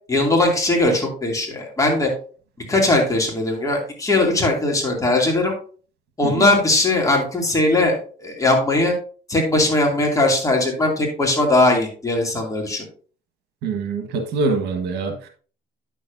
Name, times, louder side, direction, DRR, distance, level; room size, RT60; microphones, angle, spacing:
voice 1, 0.1-2.1 2.7-5.5 6.2-8.9 9.3-12.8, left 2 dB, 20° left, 2.6 m, -19 dB
voice 2, 13.6-15.3, right 3 dB, 80° right, 1.4 m, -24 dB
9.4 x 7.1 x 2.6 m
cardioid pair, 110°, 17 cm